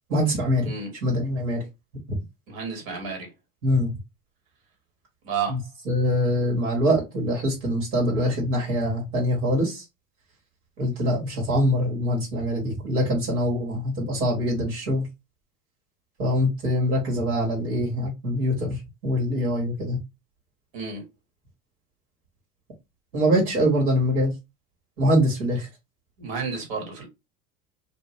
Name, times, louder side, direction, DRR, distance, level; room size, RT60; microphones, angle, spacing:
voice 1, 0.1-0.7 1.0-1.6 3.6-3.9 5.5-5.6 5.8-9.8 10.8-15.1 16.2-20.0 23.1-24.3 25.0-25.7, equal, 70° right, 1.5 m, -24 dB
voice 2, 2.5-3.3 5.2-5.6 20.7-21.0 26.2-27.1, right 5 dB, 55° right, 1.7 m, -31 dB
2.6 x 2.5 x 3.0 m
hypercardioid pair, 85°, 44 cm